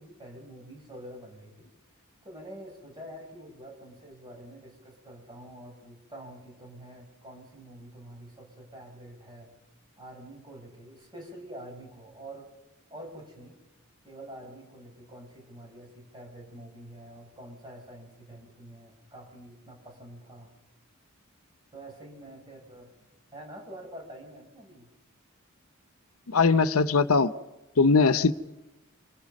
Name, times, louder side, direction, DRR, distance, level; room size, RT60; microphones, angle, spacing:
voice 1, 0.0-1.7 2.2-9.5 10.0-12.5 12.9-13.6 14.0-20.5 21.7-22.9 23.3-24.9 28.1-28.3, right 1 dB, 20° right, 7.4 m, -46 dB
voice 2, 26.3-27.3 27.8-28.3, left 4 dB, 90° left, 0.8 m, -20 dB
27.0 x 26.0 x 5.4 m
head